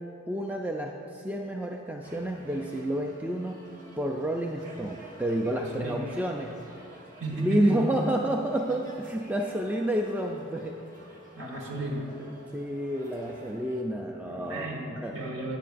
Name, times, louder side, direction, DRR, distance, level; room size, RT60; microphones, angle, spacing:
voice 1, 0.3-3.6 4.0-6.6 7.4-10.8 12.2-14.7 15.0-15.1, right 1 dB, 10° right, 2 dB, 0.3 m, -30 dB
sound 1, 2.0-13.8, right 1 dB, 40° right, 1.2 m, -50 dB
voice 2, 5.4-6.1 7.2-7.8 11.3-12.1 14.3-15.6, right 2 dB, 70° right, 0 dB, 1.4 m, -34 dB
14.0 x 9.8 x 2.5 m, 2.8 s
head